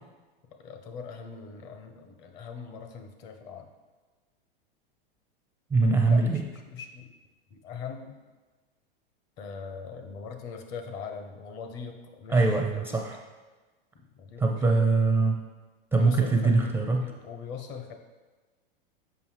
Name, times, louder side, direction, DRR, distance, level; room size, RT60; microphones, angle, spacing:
voice 1, 0.5-3.7 6.0-7.1 7.5-8.1 9.4-13.0 14.1-14.6 15.9-17.9, left 6 dB, 40° left, 6 dB, 0.9 m, -41 dB
voice 2, 5.7-6.4 12.3-13.2 14.4-15.4 15.9-17.1, right 3 dB, 10° right, 1 dB, 0.5 m, -23 dB
7.1 x 5.2 x 3.3 m, 1.3 s
hypercardioid pair, 105°, 29 cm